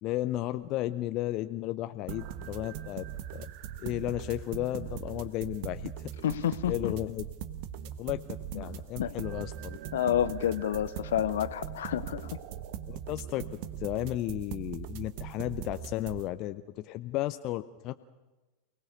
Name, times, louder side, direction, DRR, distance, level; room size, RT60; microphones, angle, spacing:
voice 1, 0.0-3.0 3.3-3.5 3.8-6.1 6.7-7.2 8.0-9.8 12.9-17.9, left 15 dB, 40° left, 10 dB, 0.7 m, -34 dB
sound 1, 2.1-16.2, right 10 dB, 45° right, 1.3 m, -40 dB
voice 2, 6.2-6.9 8.5-8.6 9.0-9.1 9.9-12.3, left 10 dB, 60° left, 15 dB, 1.1 m, -29 dB
28.5 x 19.0 x 6.7 m, 1.1 s
figure-of-eight pair, 90°, 0 cm